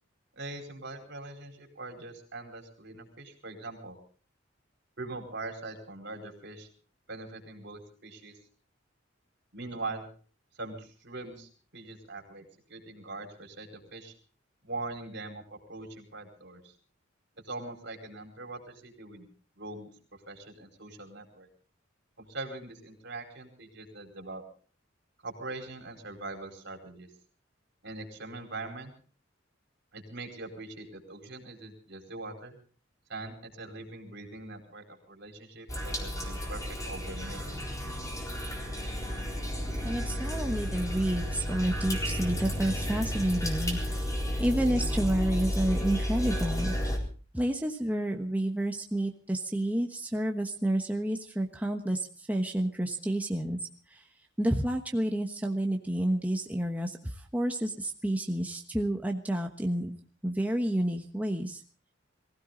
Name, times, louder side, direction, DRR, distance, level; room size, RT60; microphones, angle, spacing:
voice 1, 0.4-4.0 5.0-6.7 7.1-8.3 9.5-10.0 10.6-14.1 14.6-15.4 15.7-16.7 17.4-19.3 19.6-19.9 20.3-21.5 22.2-24.4 25.2-27.1 27.8-28.9 29.9-32.6 33.1-38.2, right 2 dB, 65° right, 3 dB, 4.6 m, -42 dB
sound 1, 35.7-47.0, equal, 20° left, 4.1 m, -32 dB
voice 2, 39.8-46.7 47.3-53.6 53.9-54.0 54.4-60.0 60.2-61.6, right 1 dB, 10° right, 3 dB, 1.2 m, -30 dB
22.5 x 16.0 x 3.9 m, 0.41 s
head